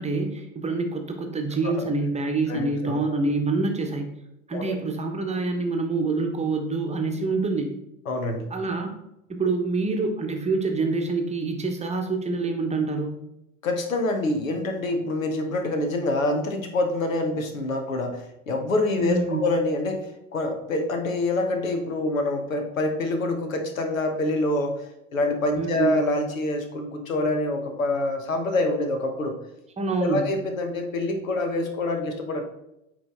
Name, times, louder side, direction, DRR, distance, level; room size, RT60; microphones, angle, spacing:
voice 1, 0.0-4.1 4.5-7.7 8.5-9.0 9.3-13.2 19.0-19.4 25.6-25.9 29.8-30.3, right 3 dB, 15° right, 3 dB, 1.0 m, -26 dB
voice 2, 2.5-3.2 4.5-4.8 8.1-8.5 13.6-29.4 30.0-32.4, left 2 dB, 80° left, 5 dB, 1.0 m, -26 dB
8.8 x 3.3 x 3.6 m, 0.86 s
figure-of-eight pair, 75°, 40 cm